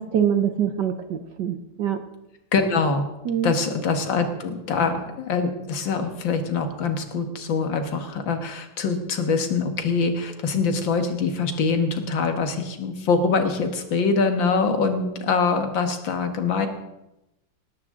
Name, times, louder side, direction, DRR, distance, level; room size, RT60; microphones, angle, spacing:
voice 1, 0.0-2.0 3.3-3.5, right 8 dB, 60° right, 9 dB, 1.3 m, -24 dB
voice 2, 2.5-3.1 3.4-16.7, left 4 dB, 65° left, 7 dB, 2.1 m, -24 dB
18.5 x 13.0 x 3.7 m, 0.90 s
omnidirectional pair, 2.3 m